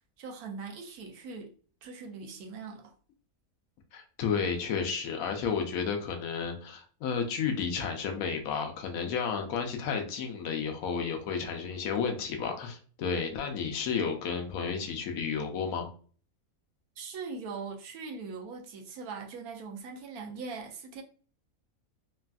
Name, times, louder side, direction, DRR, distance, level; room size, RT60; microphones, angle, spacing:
voice 1, 0.2-1.5 1.8-2.9 17.0-21.0, right 4 dB, 80° right, 1.1 m, -41 dB
voice 2, 3.9-15.9, left 6 dB, 75° left, 1.0 m, -32 dB
3.3 x 2.4 x 2.2 m
omnidirectional pair, 1.6 m